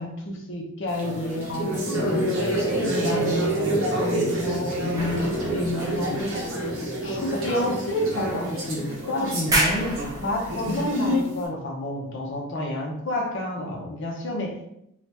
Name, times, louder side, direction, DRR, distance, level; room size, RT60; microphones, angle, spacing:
voice 1, 0.0-6.7 7.0-14.6, left 1 dB, 55° left, -1 dB, 0.7 m, -30 dB
sound 1, 0.9-11.4, right 1 dB, 60° right, 0.8 m, -28 dB
sound 2, 5.0-6.9 7.6-7.7 8.4-9.0 9.4-11.0, right 1 dB, 15° right, 0.5 m, -30 dB
2.8 x 2.4 x 3.3 m, 0.80 s
head